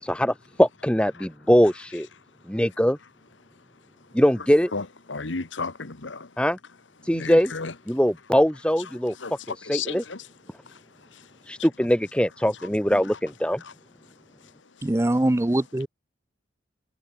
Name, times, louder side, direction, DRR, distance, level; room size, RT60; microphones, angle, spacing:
voice 1, 0.0-0.3 0.6-2.1 2.5-3.0 4.1-4.7 6.4-6.6 7.1-7.5 7.9-9.1 9.7-10.0 11.5-13.6, equal, 5° left, 1.5 m, -21 dB
voice 2, 4.7-6.3 7.0-7.7 9.2-10.3 10.7-10.8 11.1-11.3 11.6-11.7 12.9-13.0 13.6-13.7, left 4 dB, 85° left, 1.4 m, -34 dB
voice 3, 14.8-15.9, right 1 dB, 15° right, 0.4 m, -22 dB
head